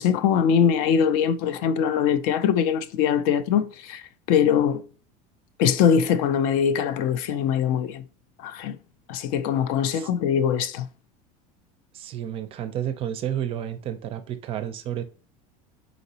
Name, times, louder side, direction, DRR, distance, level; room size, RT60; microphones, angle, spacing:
voice 1, 0.0-4.8 5.6-8.0 8.4-8.8 9.1-10.9, left 8 dB, 55° left, 0.4 m, -22 dB
voice 2, 11.9-15.0, right 10 dB, 35° right, 0.4 m, -31 dB
3.9 x 3.8 x 2.7 m
cardioid pair, 155°, 17 cm